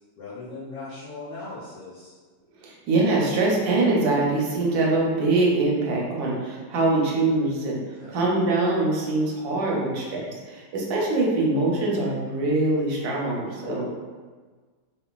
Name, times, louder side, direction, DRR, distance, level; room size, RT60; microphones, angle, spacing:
voice 1, 0.2-2.1 8.0-8.6 13.6-13.9, left 3 dB, 70° left, -8 dB, 1.4 m, -38 dB
voice 2, 2.6-7.8 8.1-13.8, right 2 dB, 70° right, -3 dB, 1.0 m, -23 dB
3.1 x 2.4 x 2.2 m, 1.4 s
omnidirectional pair, 2.1 m